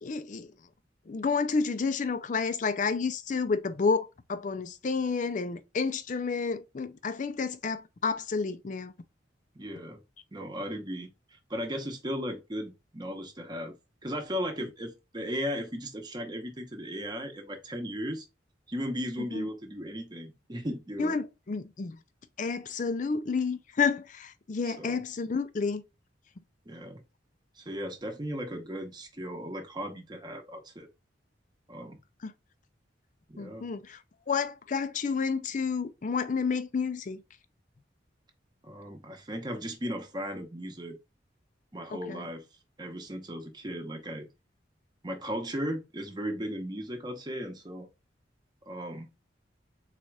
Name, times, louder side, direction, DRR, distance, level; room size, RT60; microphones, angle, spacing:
voice 1, 0.0-0.5 1.1-8.9 19.3-19.5 21.0-22.0 22.4-25.8 32.2-32.3 33.4-34.0 34.3-37.2 41.9-42.3, left 5 dB, 40° left, 0.4 m, -30 dB
voice 2, 9.5-10.0 10.3-13.7 14.0-18.2 18.7-21.2 24.6-25.0 26.7-27.0 27.6-30.9 31.7-32.0 33.3-33.7 38.6-41.0 41.7-42.4 42.8-44.3 45.0-47.9 48.7-49.1, equal, 25° right, 0.8 m, -36 dB
4.1 x 2.5 x 4.5 m
head